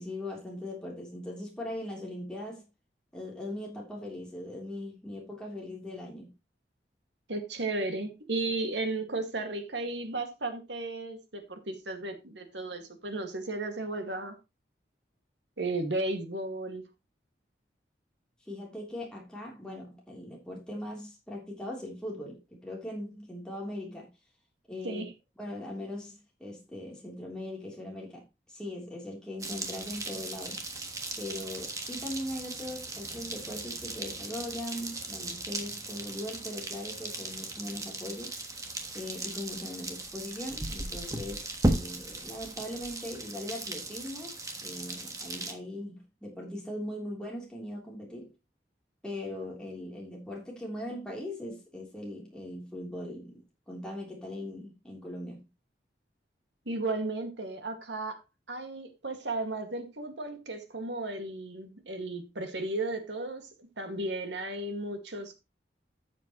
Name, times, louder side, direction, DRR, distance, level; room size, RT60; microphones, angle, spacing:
voice 1, 0.0-2.7 3.1-6.3 18.5-24.1 24.7-25.0 25.4-30.6 31.2-38.3 38.9-44.3 44.6-48.3 49.0-55.4, left 1 dB, 5° left, 3.3 m, -40 dB
voice 2, 7.3-14.4 15.6-16.8 24.8-25.1 56.7-58.2 58.5-63.5 63.8-65.3, right 2 dB, 85° right, 2.0 m, -34 dB
sound 1, 29.4-45.5, right 2 dB, 20° right, 1.3 m, -36 dB
12.5 x 7.4 x 3.0 m
head